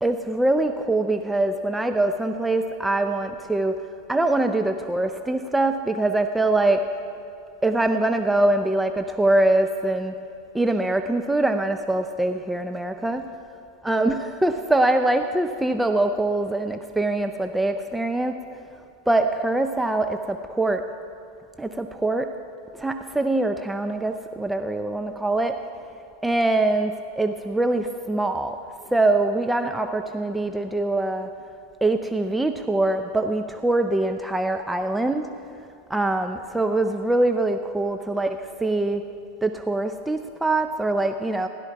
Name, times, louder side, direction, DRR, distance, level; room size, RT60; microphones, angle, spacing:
voice 1, 0.0-3.8 4.1-6.9 7.6-10.1 10.5-13.2 13.8-18.4 19.1-20.8 21.6-22.3 22.7-25.6 26.2-28.6 28.9-31.3 31.8-35.3 35.9-39.0 39.4-41.5, right 2 dB, 5° right, 7 dB, 0.5 m, -23 dB
16.0 x 12.0 x 4.6 m, 2.6 s
hypercardioid pair, 120°, 0 cm